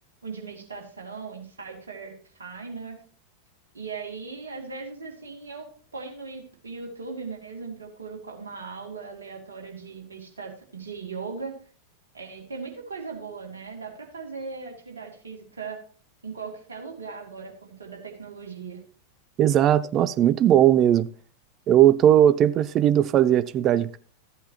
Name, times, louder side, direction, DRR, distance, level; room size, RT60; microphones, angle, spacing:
voice 1, 0.2-2.1 2.4-3.0 3.7-11.6 12.1-15.8 16.2-18.8, right 4 dB, 70° right, 2.4 m, -38 dB
voice 2, 19.4-21.1 21.7-24.0, right 11 dB, 30° right, 0.4 m, -18 dB
14.0 x 8.3 x 2.9 m
figure-of-eight pair, 90°, 0 cm